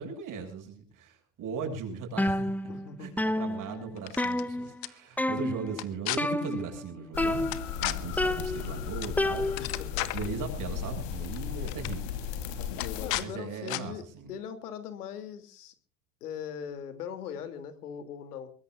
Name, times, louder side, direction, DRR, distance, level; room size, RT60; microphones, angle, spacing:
voice 1, 0.0-2.5 3.0-7.5 7.8-9.5 10.1-12.2 13.1-14.3, right 5 dB, 45° right, 4 dB, 7.3 m, -38 dB
sound 1, 2.2-2.9 3.2-4.9 5.2-5.7 6.2-6.8 7.2-7.8 8.2-9.9, left 1 dB, 5° left, 0.8 m, -30 dB
voice 2, 2.7-3.1 9.6-10.1 13.0-14.0 14.3-15.7 16.2-18.5, left 8 dB, 85° left, 10 dB, 3.1 m, -40 dB
sound 2, 4.0-4.4 4.8-4.9 5.7-6.2 7.5-8.0 9.0-9.2 9.4-10.3 11.2-11.4 11.7-11.9 12.8-13.3 13.7-13.8, left 16 dB, 50° left, 1.6 m, -33 dB
sound 3, 7.1-13.2, left 8 dB, 70° left, 3.7 m, -36 dB
23.0 x 21.0 x 2.6 m, 0.39 s
hypercardioid pair, 95°, 45 cm